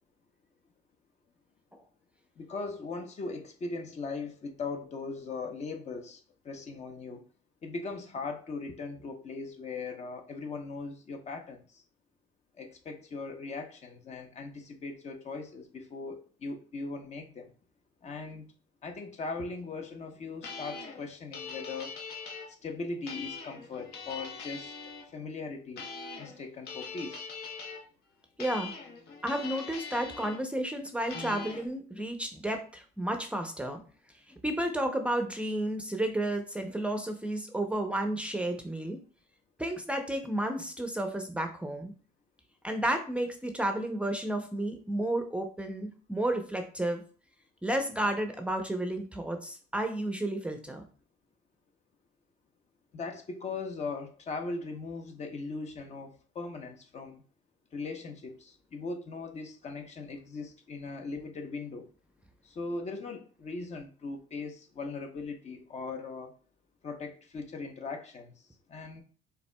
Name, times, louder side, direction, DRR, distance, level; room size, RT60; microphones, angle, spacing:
voice 1, 2.4-6.2 6.4-7.2 7.6-11.8 12.6-17.5 18.0-18.4 18.8-21.9 22.6-25.9 26.2-27.3 52.9-57.2 57.7-61.9 62.4-66.3 66.8-68.3 68.7-69.0, left 3 dB, 40° left, 5 dB, 0.8 m, -39 dB
sound 1, 20.4-22.5 23.1-25.0 25.8-26.4 26.6-27.8 28.4-30.4 31.1-31.7, left 5 dB, 70° left, 1.1 m, -42 dB
voice 2, 28.4-28.7 29.2-33.8 34.4-39.0 39.6-41.9 42.6-47.0 47.6-50.8, right 1 dB, 5° right, 5 dB, 0.6 m, -32 dB
5.7 x 3.8 x 2.2 m, 0.40 s
cardioid pair, 110°, 17 cm